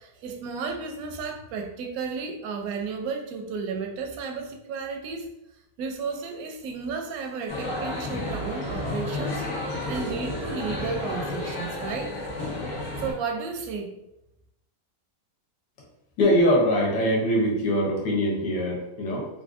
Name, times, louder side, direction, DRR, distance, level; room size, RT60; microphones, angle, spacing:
voice 1, 0.0-5.3 5.8-12.1 13.0-13.9, right 5 dB, 70° right, 3 dB, 0.9 m, -33 dB
sound 1, 7.5-13.1, left 1 dB, 55° left, 1.3 m, -31 dB
voice 2, 16.2-19.3, equal, 85° left, -2 dB, 1.5 m, -22 dB
3.4 x 2.5 x 2.4 m, 0.86 s
omnidirectional pair, 1.8 m